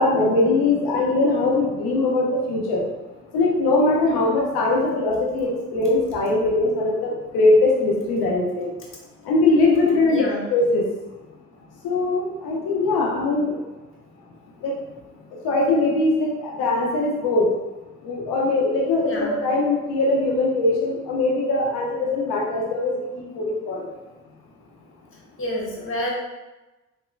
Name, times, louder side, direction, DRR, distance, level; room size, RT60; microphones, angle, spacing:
voice 1, 0.0-2.8 3.3-8.7 9.3-10.2 10.5-10.8 11.8-13.6 14.6-14.7 15.4-17.4 18.0-23.9, left 2 dB, 70° left, -2 dB, 1.0 m, -21 dB
voice 2, 10.1-10.5 19.1-19.4 25.4-26.1, left 1 dB, 30° left, -3 dB, 1.4 m, -28 dB
3.8 x 2.8 x 2.3 m, 1.1 s
hypercardioid pair, 50°, 39 cm